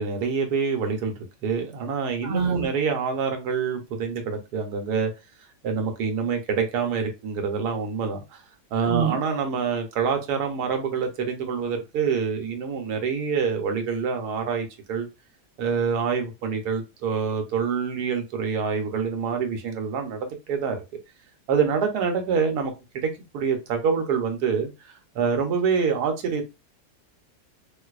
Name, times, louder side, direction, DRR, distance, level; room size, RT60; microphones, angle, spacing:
voice 1, 0.0-5.1 5.6-8.4 8.7-15.1 15.6-20.8 21.5-26.5, right 6 dB, 85° right, 1.3 m, -26 dB
voice 2, 2.2-2.7 8.9-9.2, right 6 dB, 55° right, 1.1 m, -24 dB
3.8 x 2.6 x 2.3 m
omnidirectional pair, 1.6 m